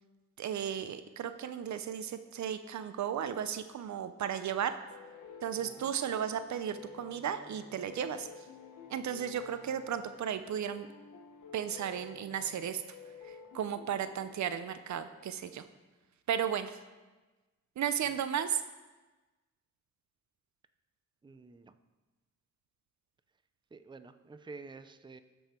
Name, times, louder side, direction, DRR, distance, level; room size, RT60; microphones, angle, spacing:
voice 1, 0.4-4.8 5.4-8.3 8.9-10.9 11.5-12.8 13.2-15.6 16.3-16.7 17.8-18.6, right 9 dB, 70° right, 11 dB, 0.6 m, -34 dB
sound 1, 4.9-15.5, left 5 dB, 75° left, 1.1 m, -52 dB
voice 2, 5.6-5.9 21.2-21.7 23.7-25.2, right 3 dB, 15° right, 10 dB, 0.5 m, -50 dB
13.5 x 5.5 x 4.4 m, 1.2 s
cardioid pair, 70°, 30 cm